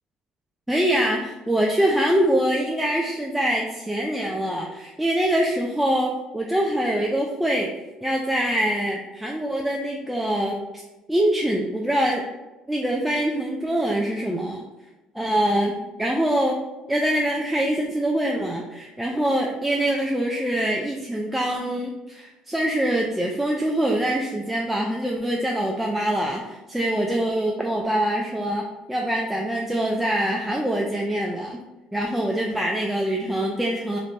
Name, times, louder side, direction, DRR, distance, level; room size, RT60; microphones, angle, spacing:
voice 1, 0.7-7.7 8.0-10.8 11.1-12.2 12.7-14.6 15.1-16.6 16.9-31.6 31.9-34.0, right 1 dB, 5° right, -1 dB, 0.3 m, -24 dB
2.4 x 2.1 x 3.2 m, 1.1 s
supercardioid pair, 80°, 2 cm